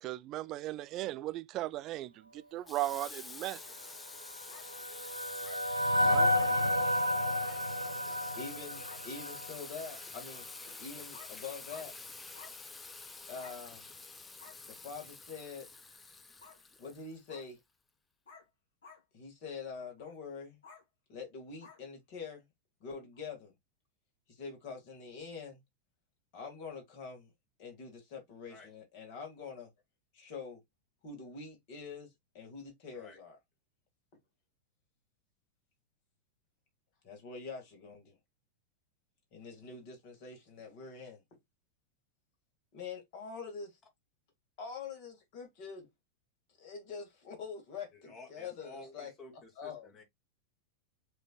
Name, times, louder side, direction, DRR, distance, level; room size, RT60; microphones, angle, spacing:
voice 1, 0.0-3.6 6.0-6.3, right 15 dB, 35° right, 0.3 m, -37 dB
Water tap faucet / Sink (filling or washing), 2.7-17.4, left 3 dB, 15° left, 0.6 m, -48 dB
sound 1, 4.3-9.6, left 1 dB, 85° right, 0.6 m, -31 dB
sound 2, 4.5-4.6 5.4-5.6 6.3-6.5 7.4-7.6 8.4-8.5 8.8-9.0 10.7-10.8 11.1-11.3 11.7-11.9 12.3-12.5 13.3-13.6 14.4-14.6 16.4-16.6 17.3-17.5 18.3-18.5 18.8-19.0 20.0-20.1 20.6-20.8 21.6-21.8 23.1-23.2, left 5 dB, 65° left, 3.0 m, -53 dB
voice 2, 8.4-11.9 13.3-13.8 14.7-15.7 16.8-17.6 19.1-20.6 21.1-22.5 22.8-23.5 24.3-25.6 26.3-27.3 27.6-29.7 30.1-30.6 31.0-32.1 32.3-33.4 37.0-38.2 39.3-41.2 42.7-43.7 44.6-45.9 46.6-49.1 49.6-50.0, left 5 dB, 45° left, 2.2 m, -45 dB
voice 3, 47.9-50.0, left 2 dB, 30° left, 1.8 m, -52 dB
7.4 x 3.0 x 2.3 m
figure-of-eight pair, 90°, 0 cm